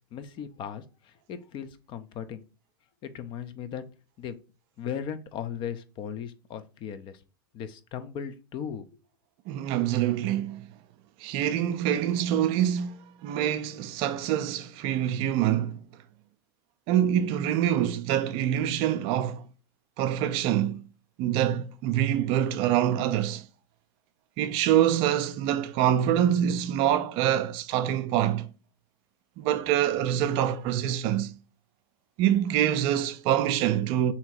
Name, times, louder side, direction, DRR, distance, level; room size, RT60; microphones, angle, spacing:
voice 1, 0.1-2.4 3.0-3.8 4.2-4.4 4.8-7.2 7.5-8.9, left 8 dB, 40° left, 0.6 m, -37 dB
voice 2, 9.5-10.7 11.2-15.8 16.9-19.5 20.0-20.8 21.2-23.5 24.4-28.5 29.4-31.3 32.2-34.1, right 11 dB, 50° right, 0.4 m, -25 dB
3.7 x 2.8 x 4.3 m
hypercardioid pair, 95°, 12 cm